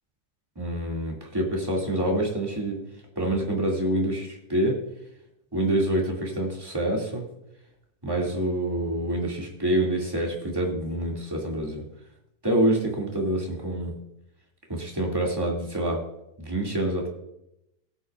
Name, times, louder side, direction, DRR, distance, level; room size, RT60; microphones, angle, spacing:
voice 1, 0.5-2.8 3.1-4.8 5.5-7.2 8.0-11.8 12.4-13.9 14.7-16.0 16.4-17.1, right 1 dB, 10° right, -2 dB, 1.6 m, -26 dB
18.5 x 8.6 x 2.4 m, 0.84 s
omnidirectional pair, 4.0 m